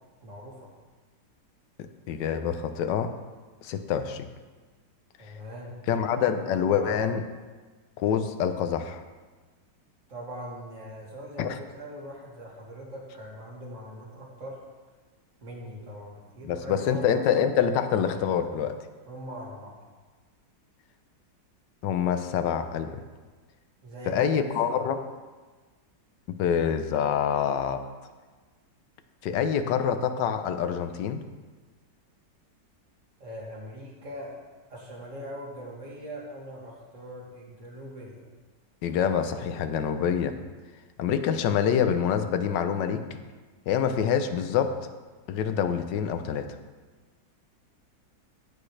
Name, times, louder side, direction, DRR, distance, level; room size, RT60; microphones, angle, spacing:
voice 1, 0.2-0.7 5.2-7.0 10.1-14.6 15.4-17.5 19.1-19.9 23.8-24.9 29.3-29.6 33.2-34.3 34.7-38.3, equal, 45° right, -3 dB, 2.6 m, -41 dB
voice 2, 2.1-3.1 3.6-4.3 5.9-7.2 8.0-9.0 11.4-11.6 16.4-18.7 21.8-23.0 24.1-25.0 26.4-27.8 29.2-31.2 38.8-40.3 41.0-43.0 43.7-44.8 45.3-46.5, left 8 dB, 80° left, 8 dB, 1.4 m, -26 dB
15.5 x 8.6 x 3.3 m, 1.3 s
omnidirectional pair, 1.9 m